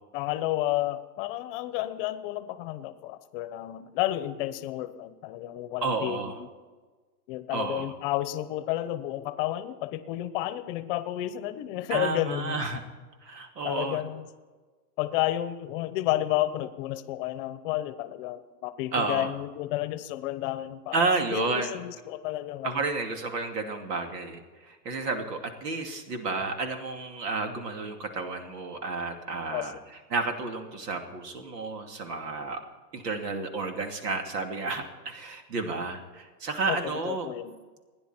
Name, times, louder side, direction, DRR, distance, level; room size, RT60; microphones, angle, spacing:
voice 1, 0.1-6.5 7.3-12.6 13.6-14.3 15.0-21.0 21.3-22.9 29.5-29.7 36.7-37.5, left 14 dB, 35° left, 13 dB, 0.9 m, -31 dB
voice 2, 5.8-6.3 7.5-7.9 11.9-12.8 13.2-14.0 18.9-19.3 20.9-21.8 22.6-29.8 30.1-32.6 32.9-37.3, right 3 dB, 80° right, 5 dB, 2.9 m, -31 dB
28.0 x 10.5 x 4.5 m, 1.3 s
hypercardioid pair, 145°, 48 cm